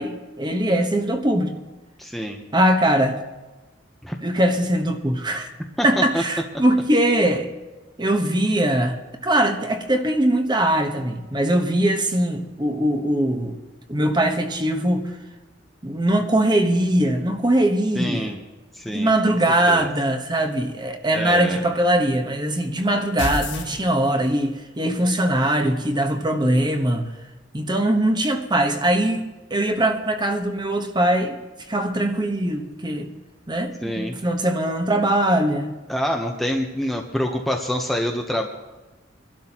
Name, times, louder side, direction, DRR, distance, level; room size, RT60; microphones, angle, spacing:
voice 1, 0.0-1.6 2.5-3.2 4.2-5.5 5.8-7.5 8.0-13.6 13.9-15.1 15.8-18.3 18.8-27.1 27.5-31.4 31.7-33.1 33.5-35.7, right 1 dB, 25° right, 5 dB, 1.1 m, -21 dB
voice 2, 2.0-2.4 4.0-4.2 5.8-6.2 18.0-18.4 18.7-19.1 19.7-19.9 21.1-21.6 33.8-34.1 35.9-38.5, equal, ahead, 1 dB, 0.8 m, -26 dB
sound 1, 23.2-24.5, left 2 dB, 70° left, 1.6 m, -29 dB
24.0 x 12.0 x 2.9 m, 1.1 s
head